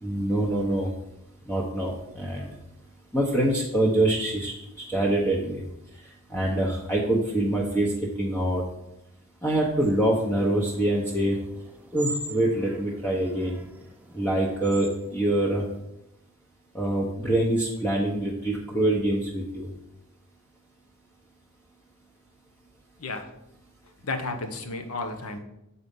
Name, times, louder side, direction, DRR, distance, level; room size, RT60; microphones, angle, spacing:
voice 1, 0.0-0.9 1.5-2.5 3.1-5.6 6.3-7.9 8.2-8.6 9.4-11.4 11.9-13.6 14.1-15.6 16.7-19.7, right 1 dB, 10° left, -4 dB, 0.9 m, -25 dB
sound 1, 9.8-15.8, right 2 dB, 10° right, 0.5 m, -43 dB
voice 2, 23.0-23.3 24.0-25.4, left 3 dB, 90° left, 7 dB, 0.9 m, -32 dB
7.7 x 4.2 x 5.3 m, 0.87 s
head